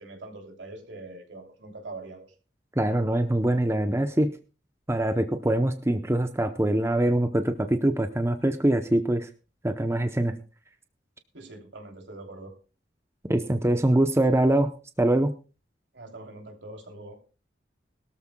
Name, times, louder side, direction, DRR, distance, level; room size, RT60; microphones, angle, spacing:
voice 1, 0.0-2.3 11.3-12.5 15.9-17.2, right 2 dB, 80° right, 2 dB, 3.1 m, -43 dB
voice 2, 2.8-4.3 4.9-9.3 9.6-10.4 13.2-14.7 15.0-15.4, right 1 dB, 15° right, 8 dB, 0.7 m, -23 dB
21.0 x 13.0 x 2.2 m, 0.33 s
head